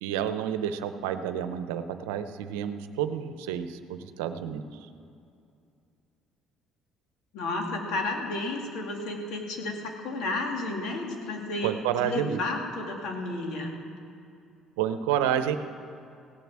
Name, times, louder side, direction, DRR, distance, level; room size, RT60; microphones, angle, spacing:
voice 1, 0.0-4.6 11.6-12.4 14.8-15.6, right 9 dB, 90° right, 10 dB, 0.8 m, -29 dB
voice 2, 7.3-11.8 12.0-13.7, left 2 dB, 70° left, 1 dB, 2.6 m, -32 dB
17.0 x 9.3 x 7.5 m, 2.5 s
supercardioid pair, 75°, 0 cm